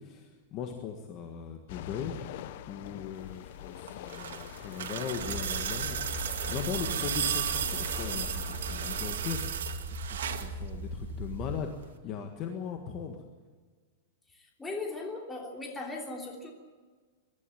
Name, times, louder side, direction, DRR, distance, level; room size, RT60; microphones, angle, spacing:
voice 1, 0.0-2.2 2.7-9.5 10.0-13.2, left 7 dB, 25° left, 4 dB, 1.6 m, -39 dB
sound 1, 1.7-9.1, left 12 dB, 45° left, 0.9 m, -44 dB
sound 2, 3.8-10.5 11.8-11.9, right 9 dB, 90° right, 2.2 m, -34 dB
sound 3, 5.1-11.5, right 1 dB, 25° right, 7.3 m, -39 dB
voice 2, 14.6-16.5, left 3 dB, 10° left, 0 dB, 3.1 m, -38 dB
22.5 x 12.5 x 9.1 m, 1.4 s
supercardioid pair, 170°, 0 cm